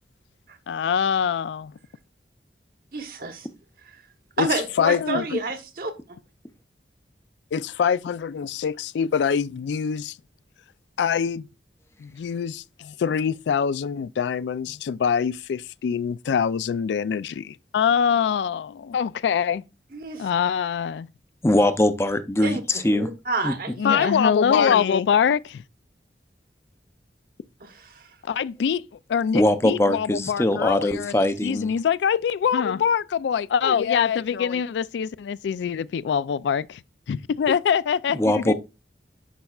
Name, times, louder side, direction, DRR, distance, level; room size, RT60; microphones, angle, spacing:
voice 1, 0.7-1.7 4.4-5.4 7.5-10.2 11.0-11.5 12.0-19.6 20.2-21.1 23.8-25.6 28.3-28.8 29.1-36.8 37.1-38.5, left 7 dB, 85° left, 0.3 m, -24 dB
voice 2, 2.9-3.5 3.8-4.0 4.4-6.2 19.9-20.3 22.4-24.8 27.6-28.1, right 3 dB, 55° right, 1.1 m, -31 dB
voice 3, 21.4-23.1 23.4-23.5 29.3-31.7 38.1-38.5, left 1 dB, 15° left, 0.5 m, -21 dB
10.0 x 5.3 x 2.4 m
head